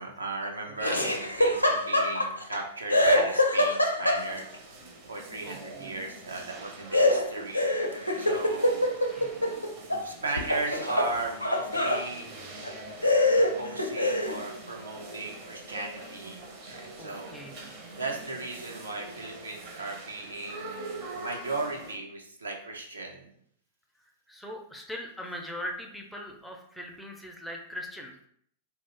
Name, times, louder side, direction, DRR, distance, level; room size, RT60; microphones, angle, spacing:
voice 1, 0.0-4.5 5.1-7.6 7.9-8.9 10.0-12.3 13.4-16.4 16.7-17.4 17.9-23.3, right 3 dB, 80° right, 1 dB, 0.5 m, -36 dB
Laughter, 0.8-2.6 2.9-4.6 6.9-10.0 10.4-12.0 12.6-12.7 13.0-14.4, left 1 dB, 90° left, 0.4 m, -25 dB
sound 1, 4.1-22.0, right 2 dB, 40° right, 0.6 m, -44 dB
voice 2, 5.4-5.9 9.1-9.4 17.0-17.9 24.3-28.1, equal, ahead, 1 dB, 0.4 m, -41 dB
2.3 x 2.1 x 3.6 m, 0.67 s
figure-of-eight pair, 95°, 0 cm